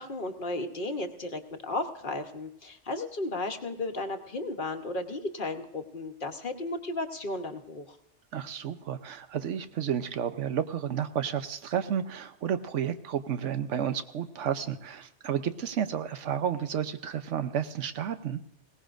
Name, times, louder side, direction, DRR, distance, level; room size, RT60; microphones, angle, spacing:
voice 1, 0.0-8.0, left 2 dB, 45° left, 5 dB, 1.2 m, -34 dB
voice 2, 8.3-18.4, right 9 dB, 90° right, 10 dB, 1.1 m, -31 dB
21.0 x 18.0 x 2.5 m, 0.79 s
omnidirectional pair, 1.2 m